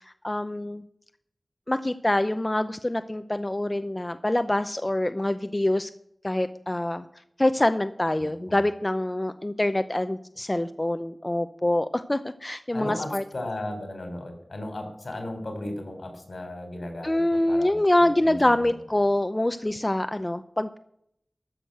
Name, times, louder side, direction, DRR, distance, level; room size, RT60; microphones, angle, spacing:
voice 1, 0.2-0.8 1.7-5.9 6.2-7.0 7.4-13.2 17.0-20.8, left 1 dB, 30° left, 10 dB, 0.6 m, -25 dB
voice 2, 8.2-8.6 12.7-18.7, left 1 dB, 75° left, 5 dB, 3.4 m, -36 dB
13.5 x 6.5 x 7.7 m, 0.71 s
wide cardioid pair, 65°, 0 cm